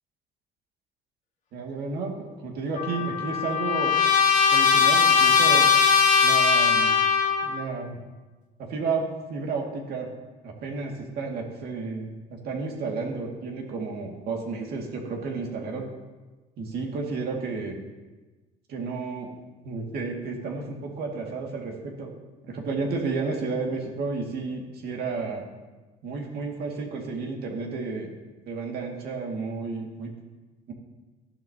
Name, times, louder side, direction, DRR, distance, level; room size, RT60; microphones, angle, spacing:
voice 1, 1.5-4.0 4.5-5.7 6.2-6.9 7.4-8.0 8.6-10.1 10.4-15.9 16.6-17.8 18.7-19.3 19.6-22.1 22.4-25.5 26.0-28.1 28.5-30.1 30.7-30.8, right 4 dB, 70° right, 0 dB, 2.2 m, -32 dB
Trumpet, 2.8-7.6, left 6 dB, 45° left, 1.6 m, -20 dB
15.0 x 11.0 x 2.9 m, 1.2 s
cardioid pair, 110°, 17 cm